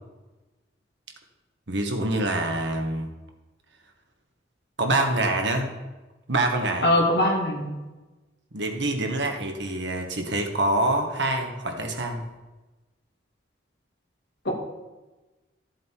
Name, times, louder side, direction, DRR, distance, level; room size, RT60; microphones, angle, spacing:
voice 1, 1.7-3.1 4.8-5.7 6.3-6.9 8.5-12.2, right 2 dB, 75° right, 3 dB, 1.5 m, -25 dB
voice 2, 6.8-7.8 14.5-14.6, left 1 dB, 65° left, 1 dB, 2.0 m, -22 dB
13.0 x 7.4 x 4.6 m, 1.1 s
head